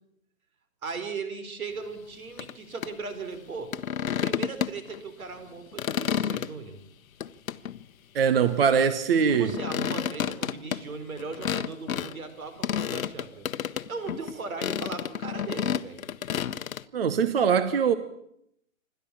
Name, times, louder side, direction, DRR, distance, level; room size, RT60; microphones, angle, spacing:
voice 1, 0.8-3.7 4.2-6.8 8.6-8.7 9.3-13.5 13.9-16.0, right 4 dB, 85° right, 4.5 m, -38 dB
sound 1, 2.4-2.5 2.8-2.9 3.7-5.0 5.4-6.5 7.2-7.8 9.2-12.1 12.6-14.3 14.6-16.8, left 9 dB, 75° left, 1.0 m, -30 dB
voice 2, 8.1-9.5 16.9-17.9, right 6 dB, 45° right, 1.0 m, -22 dB
27.5 x 12.5 x 8.6 m
hypercardioid pair, 180°, 41 cm